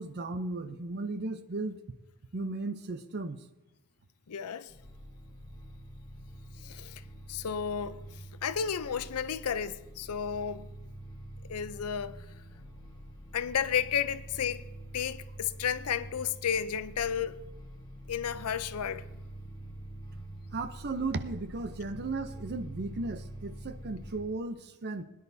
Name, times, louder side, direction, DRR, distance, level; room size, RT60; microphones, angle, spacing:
voice 1, 0.0-1.8 2.3-3.4 20.5-25.0, right 3 dB, 50° right, 0.7 m, -35 dB
voice 2, 4.3-4.7 6.6-7.0 7.3-8.0 8.4-10.7 11.5-12.2 13.3-14.6 14.9-17.4 18.1-19.0, left 8 dB, 90° left, 0.6 m, -32 dB
sound 1, 4.7-24.2, right 1 dB, 20° left, 4.0 m, -46 dB
21.0 x 10.5 x 2.7 m
head